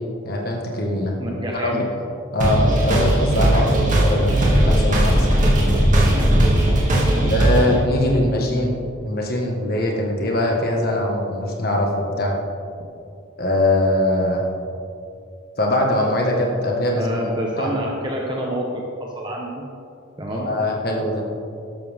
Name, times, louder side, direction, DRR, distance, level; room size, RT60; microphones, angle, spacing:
voice 1, 0.2-1.1 1.7-1.9 2.3-4.3 4.7-5.3 7.3-8.7 9.0-12.3 13.4-14.4 15.6-17.2 17.6-17.8 20.3-21.3, left 1 dB, 45° left, 0 dB, 1.7 m, -22 dB
voice 2, 1.2-1.9 7.0-7.3 16.9-19.7 20.2-20.5, equal, 20° right, -2 dB, 1.1 m, -28 dB
sound 1, 2.4-7.8, right 1 dB, 40° right, 2.4 m, -17 dB
13.0 x 12.0 x 3.6 m, 2.6 s
head